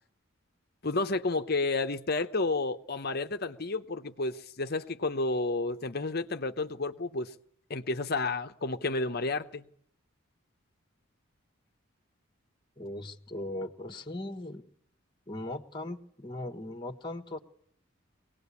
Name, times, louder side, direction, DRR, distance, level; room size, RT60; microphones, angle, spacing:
voice 1, 0.8-7.3 7.7-9.7, left 3 dB, 50° left, 0.9 m, -31 dB
voice 2, 12.8-14.7 15.3-17.4, left 1 dB, 20° left, 1.4 m, -38 dB
24.0 x 18.5 x 8.4 m
head